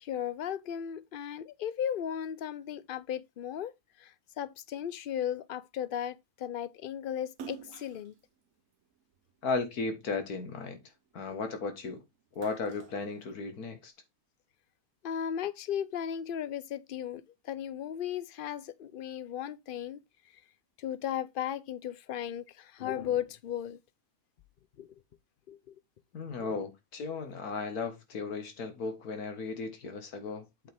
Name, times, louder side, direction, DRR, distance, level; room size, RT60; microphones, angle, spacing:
voice 1, 0.0-3.7 4.0-8.1 15.0-20.0 20.8-23.8 24.8-24.9 25.5-25.7 26.4-26.5, left 9 dB, 50° left, 0.7 m, -36 dB
Splash splatter, 7.3-9.9 10.3-11.8 12.1-13.8, right 7 dB, 65° right, 1.2 m, -50 dB
voice 2, 9.4-10.8 11.1-12.0 12.4-13.9 26.1-30.7, left 4 dB, 85° left, 2.0 m, -35 dB
8.3 x 5.6 x 3.5 m
omnidirectional pair, 1.6 m